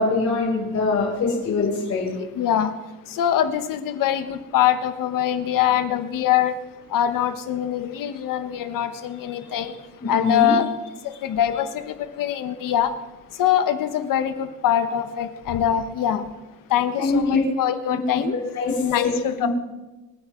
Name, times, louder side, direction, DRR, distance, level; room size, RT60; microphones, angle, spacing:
voice 1, 0.0-2.1 10.1-10.5 17.0-17.4 17.9-18.0 18.5-19.1 19.4-19.5, left 3 dB, 60° left, -6 dB, 6.8 m, -23 dB
voice 2, 2.2-2.7 3.1-6.6 6.9-9.8 10.1-10.7 11.0-12.9 13.3-16.3 16.7-18.3 18.8-19.5, left 10 dB, 85° left, 9 dB, 1.3 m, -23 dB
28.0 x 9.4 x 3.9 m, 1.1 s
cardioid pair, 160°, 32 cm